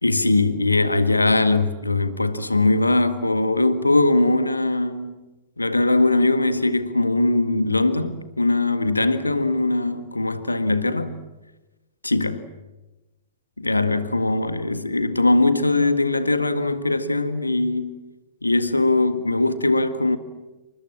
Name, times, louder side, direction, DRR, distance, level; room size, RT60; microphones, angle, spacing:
voice 1, 0.0-5.2 5.6-11.1 12.0-12.4 13.6-18.0 18.4-20.2, left 2 dB, 85° left, 1.8 m, -21 dB
28.5 x 25.0 x 7.6 m
figure-of-eight pair, 105°, 0 cm